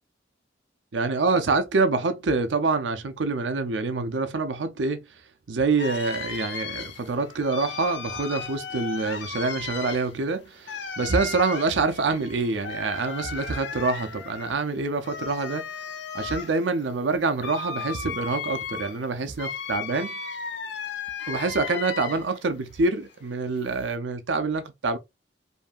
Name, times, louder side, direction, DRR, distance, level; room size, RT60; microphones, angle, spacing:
voice 1, 0.9-15.7 16.1-20.2 21.3-25.0, right 3 dB, 85° right, 0.6 m, -26 dB
sound 1, 5.8-22.4 22.8-23.9, left 5 dB, 75° left, 0.9 m, -36 dB
5.1 x 2.7 x 2.4 m
head